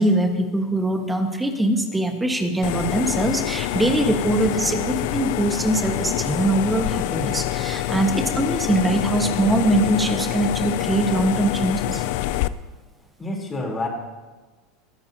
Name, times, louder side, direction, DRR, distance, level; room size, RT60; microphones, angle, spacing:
voice 1, 0.0-12.0, right 1 dB, 10° right, 4 dB, 1.6 m, -22 dB
sound 1, 2.6-12.5, left 15 dB, 70° left, 0.5 m, -26 dB
voice 2, 13.2-13.9, left 2 dB, 20° left, -1 dB, 3.8 m, -29 dB
21.5 x 10.5 x 2.9 m, 1.3 s
supercardioid pair, 115°, 0 cm